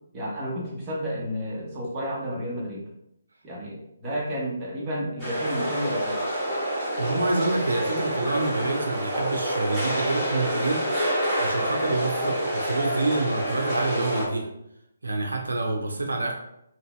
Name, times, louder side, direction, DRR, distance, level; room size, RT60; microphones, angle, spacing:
voice 1, 0.1-2.8 3.4-6.3, equal, 20° right, -5 dB, 0.9 m, -31 dB
sound 1, 5.2-14.3, equal, ahead, 1.4 m, -27 dB
voice 2, 7.0-10.8 11.4-14.5 15.0-16.3, right 2 dB, 80° right, 1 dB, 0.5 m, -27 dB
2.9 x 2.6 x 2.2 m, 0.79 s
figure-of-eight pair, 145°, 0 cm